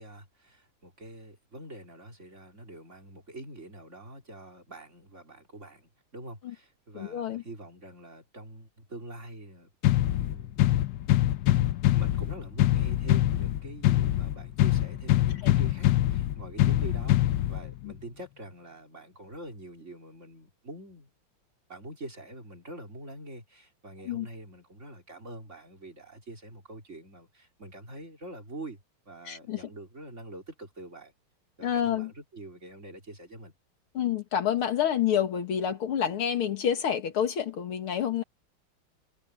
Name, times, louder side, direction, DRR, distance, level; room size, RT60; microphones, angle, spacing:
voice 1, 0.0-9.7 10.2-10.9 11.9-21.1 21.7-31.1 31.6-33.5, right 1 dB, 35° right, 3.7 m, -45 dB
voice 2, 6.9-7.4 15.4-15.5 17.8-17.9 24.1-24.3 29.3-29.6 31.6-32.1 33.9-38.2, left 9 dB, 90° left, 2.7 m, -28 dB
sound 1, 9.8-17.8, left 14 dB, 70° left, 1.1 m, -24 dB
omnidirectional pair, 2.3 m